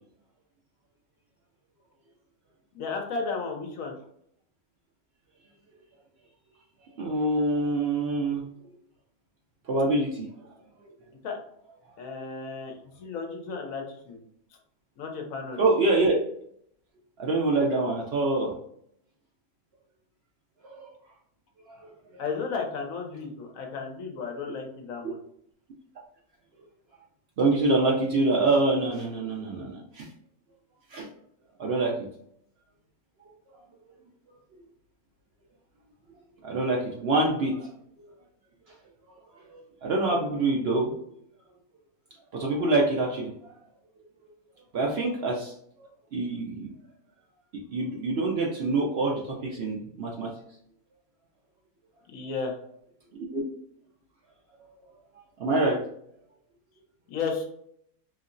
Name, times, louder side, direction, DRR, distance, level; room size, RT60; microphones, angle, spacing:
voice 1, 2.7-3.9 11.2-11.4 12.0-14.2 15.0-15.7 22.2-25.2 52.1-52.6 57.1-57.4, left 4 dB, 65° left, 2 dB, 1.0 m, -33 dB
voice 2, 7.0-8.5 9.7-10.3 15.6-16.2 17.2-18.5 20.6-20.9 21.7-21.9 27.4-30.1 30.9-31.1 31.6-31.9 33.5-33.6 36.4-37.7 39.5-40.9 42.3-43.5 44.7-45.5 46.1-46.7 47.5-50.3 53.3-53.4 55.4-55.8, right 2 dB, 70° right, -2 dB, 0.6 m, -25 dB
3.1 x 2.8 x 2.5 m, 0.68 s
omnidirectional pair, 1.6 m